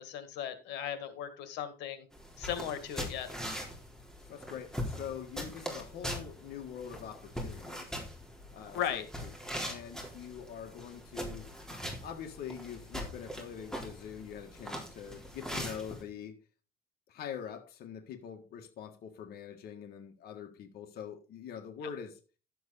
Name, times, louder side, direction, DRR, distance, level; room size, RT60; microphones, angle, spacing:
voice 1, 0.0-2.0 2.4-3.3 8.7-9.0, left 9 dB, 85° left, 1.8 m, -36 dB
sound 1, 2.1-16.0, equal, 5° left, 4.0 m, -41 dB
voice 2, 4.3-8.0 8.5-9.3 9.7-11.5 12.0-16.4 17.1-22.2, left 8 dB, 65° left, 1.6 m, -44 dB
12.0 x 7.9 x 4.1 m
cardioid pair, 110°, 17 cm